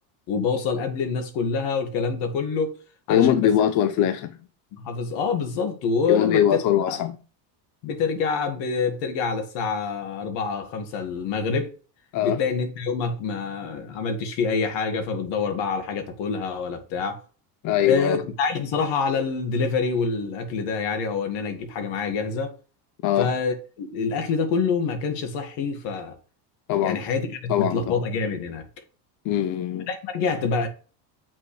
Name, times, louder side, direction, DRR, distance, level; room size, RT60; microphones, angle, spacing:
voice 1, 0.3-2.8 3.1-3.5 4.7-6.6 6.9-7.0 7.8-11.7 12.2-17.2 17.8-22.5 23.2-26.2 26.8-28.6 29.9-30.7, left 5 dB, 60° left, 2.0 m, -26 dB
voice 2, 3.1-4.4 6.1-7.2 12.1-12.4 17.6-18.2 23.0-23.3 26.7-27.0 27.5-28.0 29.2-29.9, left 10 dB, 40° left, 0.5 m, -22 dB
7.7 x 6.0 x 3.3 m
cardioid pair, 140°, 49 cm